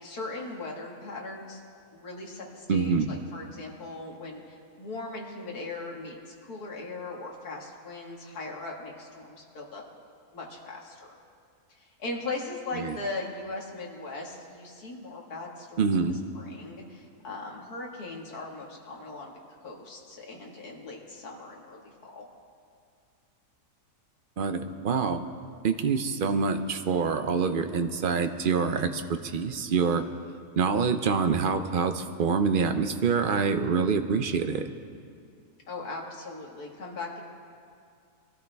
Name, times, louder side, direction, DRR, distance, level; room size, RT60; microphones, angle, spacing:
voice 1, 0.0-1.6 1.9-9.8 10.3-11.2 11.7-19.3 19.6-22.2 35.7-37.2, left 3 dB, 70° left, -2 dB, 2.4 m, -39 dB
voice 2, 2.7-3.1 12.7-13.0 15.8-16.2 24.4-25.3 25.6-30.0 30.6-34.7, right 5 dB, 60° right, 8 dB, 0.5 m, -26 dB
23.5 x 13.5 x 3.4 m, 2.3 s
omnidirectional pair, 1.7 m